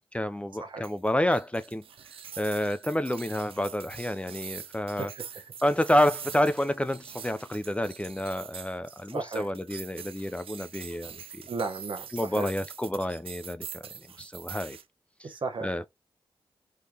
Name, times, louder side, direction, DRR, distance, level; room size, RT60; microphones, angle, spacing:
voice 1, 0.1-1.8 2.4-5.1 5.6-11.4 12.1-13.9 14.2-14.8 15.2-15.3 15.6-15.9, left 1 dB, 15° left, 0.4 m, -29 dB
sound 1, 0.8-14.8, right 8 dB, 75° right, 0.4 m, -44 dB
voice 2, 5.0-5.4 9.1-9.5 11.5-12.5 15.2-15.7, right 4 dB, 60° right, 1.0 m, -34 dB
3.6 x 3.2 x 2.8 m
cardioid pair, 50°, 9 cm